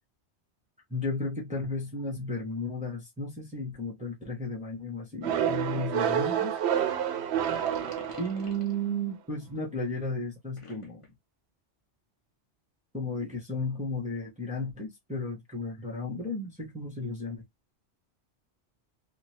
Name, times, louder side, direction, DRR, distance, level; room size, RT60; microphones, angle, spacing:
voice 1, 0.9-6.5 8.2-11.0 12.9-17.4, left 1 dB, 10° right, 0.8 m, -34 dB
sound 1, 5.2-8.8, right 9 dB, 70° right, 0.8 m, -28 dB
sound 2, 7.3-8.8 10.6-11.1, left 3 dB, 30° left, 0.9 m, -47 dB
2.8 x 2.4 x 3.0 m
omnidirectional pair, 1.2 m